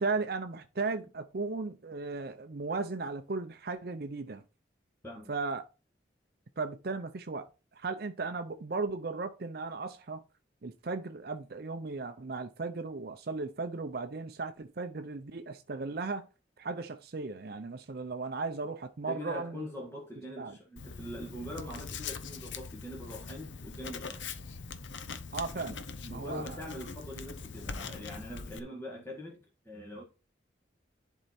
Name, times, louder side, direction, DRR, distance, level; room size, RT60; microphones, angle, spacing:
voice 1, 0.0-4.4 5.3-5.6 6.6-10.2 10.6-16.3 16.6-19.7 20.4-20.6 25.3-26.6, right 3 dB, 55° right, 0.5 m, -36 dB
voice 2, 19.1-24.3 26.1-29.4 29.7-30.0, left 1 dB, 15° left, 1.7 m, -43 dB
Writing, 20.8-28.6, left 5 dB, 80° left, 0.9 m, -42 dB
11.0 x 4.6 x 4.2 m
head